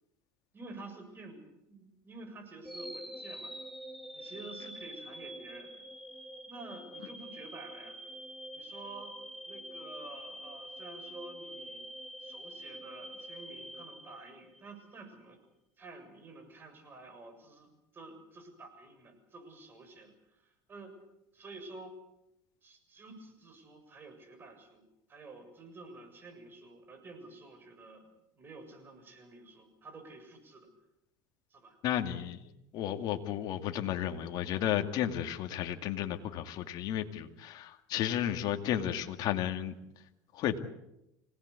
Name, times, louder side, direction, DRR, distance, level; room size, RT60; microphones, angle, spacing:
voice 1, 0.5-3.6 4.1-5.8 6.5-8.0 8.5-9.1 9.5-11.8 12.2-15.4 15.8-21.0 21.3-22.0 22.6-24.8 25.1-28.1 28.4-30.7 31.5-31.8, right 3 dB, 25° right, 5 dB, 7.1 m, -50 dB
sound 1, 2.6-14.8, equal, ahead, 2.6 m, -46 dB
voice 2, 31.8-39.8 40.3-40.6, left 11 dB, 55° left, 6 dB, 2.3 m, -33 dB
26.5 x 18.5 x 8.4 m, 0.85 s
supercardioid pair, 120°, 8 cm